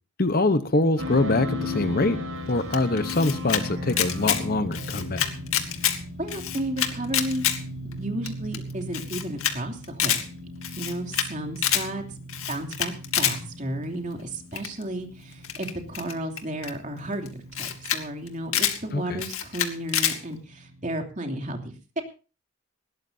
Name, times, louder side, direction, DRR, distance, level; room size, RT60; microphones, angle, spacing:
voice 1, 0.2-2.2 2.5-5.2 18.9-19.2, left 2 dB, 45° left, 11 dB, 1.0 m, -24 dB
sound 1, 1.0-20.9, left 2 dB, 70° right, 6.4 m, -37 dB
Camera, 2.7-3.6 3.9-4.4 4.7-6.0 6.3-7.6 7.9-8.0 8.3-8.4 8.5-8.6 8.9-9.5 9.8-10.2 10.6-11.3 11.6-11.8 12.3-13.4 14.6-14.8 15.4-16.7 17.3-17.4 17.5-18.0 18.3-18.8 19.2-20.2, left 10 dB, 75° left, 2.3 m, -26 dB
voice 2, 6.2-7.4 7.8-10.2 10.7-12.0 12.5-22.0, right 1 dB, 35° right, 4 dB, 2.9 m, -33 dB
20.5 x 17.5 x 2.8 m, 0.34 s
head